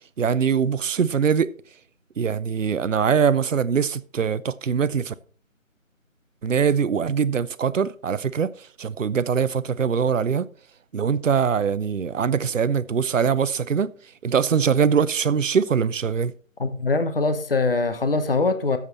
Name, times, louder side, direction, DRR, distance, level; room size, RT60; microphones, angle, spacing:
voice 1, 0.2-1.5 2.2-5.1 6.4-8.5 8.8-10.5 10.9-13.9 14.2-16.3, right 6 dB, 65° right, 0.6 m, -22 dB
voice 2, 16.6-18.8, left 3 dB, 45° left, 0.9 m, -22 dB
13.0 x 7.3 x 4.1 m
figure-of-eight pair, 165°, 41 cm